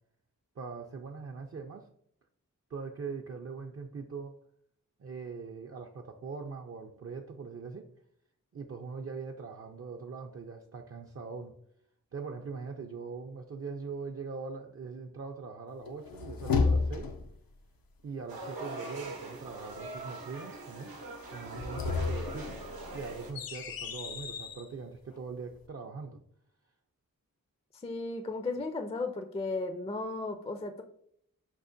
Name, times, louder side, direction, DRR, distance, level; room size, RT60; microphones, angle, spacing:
voice 1, 0.6-1.9 2.7-4.3 5.0-7.9 8.5-11.5 12.1-17.1 18.0-20.9 21.3-22.6 22.9-26.2, right 5 dB, 45° right, 2 dB, 0.4 m, -41 dB
sound 1, 15.9-17.4 21.4-24.7, left 4 dB, 85° left, 0.5 m, -32 dB
sound 2, 18.3-23.3, right 2 dB, 90° right, 0.7 m, -42 dB
voice 2, 27.7-30.8, left 3 dB, 20° left, 7 dB, 0.4 m, -35 dB
6.1 x 2.1 x 2.5 m, 0.69 s
cardioid pair, 40°, 34 cm